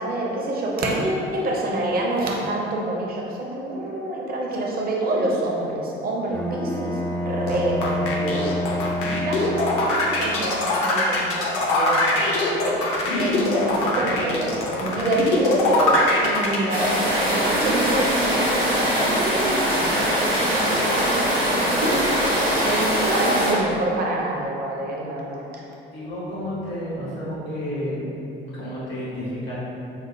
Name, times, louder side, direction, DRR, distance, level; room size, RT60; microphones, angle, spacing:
voice 1, 0.0-7.0 7.3-8.7 9.0-25.5, right 1 dB, 30° right, -2 dB, 0.6 m, -27 dB
Bowed string instrument, 6.3-10.3, equal, 5° left, 0.3 m, -28 dB
voice 2, 7.4-7.8 25.9-28.1 28.5-29.5, equal, 80° left, -9 dB, 1.2 m, -31 dB
sound 1, 7.5-16.6, left 2 dB, 50° left, 0.6 m, -22 dB
sound 2, 16.7-23.5, equal, 90° right, 0.6 m, -22 dB
3.9 x 2.0 x 3.1 m, 2.8 s
figure-of-eight pair, 55°, 29 cm